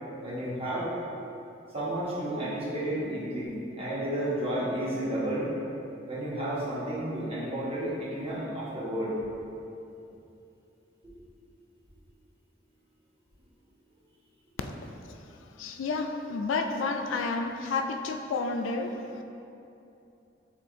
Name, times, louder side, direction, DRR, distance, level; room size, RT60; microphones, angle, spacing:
voice 1, 0.2-0.9 1.7-5.5 6.1-9.1, right 1 dB, 30° right, -8 dB, 1.2 m, -32 dB
voice 2, 15.6-18.9, left 3 dB, 80° left, 5 dB, 0.3 m, -30 dB
5.5 x 3.6 x 2.6 m, 2.7 s
head